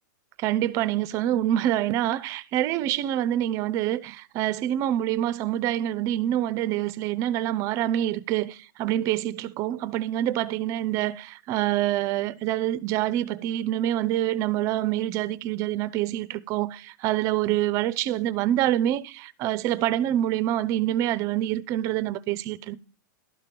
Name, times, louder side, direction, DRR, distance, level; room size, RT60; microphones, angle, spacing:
voice 1, 0.4-22.8, right 12 dB, 30° right, 0.5 m, -26 dB
12.5 x 5.2 x 5.9 m
supercardioid pair, 155°, 11 cm